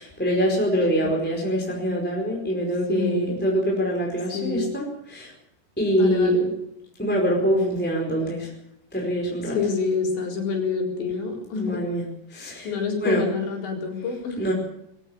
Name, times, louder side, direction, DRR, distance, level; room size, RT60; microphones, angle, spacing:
voice 1, 0.0-5.3 5.8-6.3 7.0-8.5 8.9-9.6 11.5-12.1 12.3-12.7 13.0-13.3 14.4-14.5, equal, ahead, -1 dB, 4.4 m, -24 dB
voice 2, 2.9-3.4 4.3-4.7 5.9-6.5 9.5-11.8 12.6-14.5, left 4 dB, 80° left, 2 dB, 6.4 m, -27 dB
21.5 x 17.5 x 7.1 m, 0.79 s
omnidirectional pair, 5.0 m